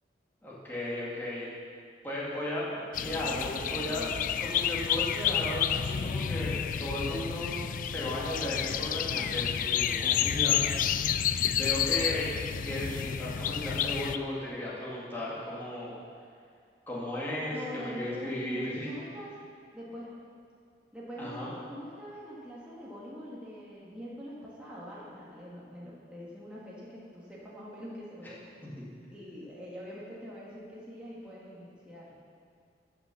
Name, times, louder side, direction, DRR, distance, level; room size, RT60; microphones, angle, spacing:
voice 1, 0.4-1.5 2.0-4.1 4.4-10.6 11.5-12.3 12.6-16.0 16.9-18.9 21.2-21.5, left 1 dB, 10° left, -7 dB, 2.2 m, -35 dB
sound 1, 2.9-14.2, left 9 dB, 50° left, 0.3 m, -30 dB
voice 2, 3.0-4.7 17.5-19.3 19.7-20.1 20.9-28.4 29.1-32.1, equal, 5° right, -7 dB, 1.6 m, -44 dB
10.5 x 6.1 x 7.0 m, 2.2 s
head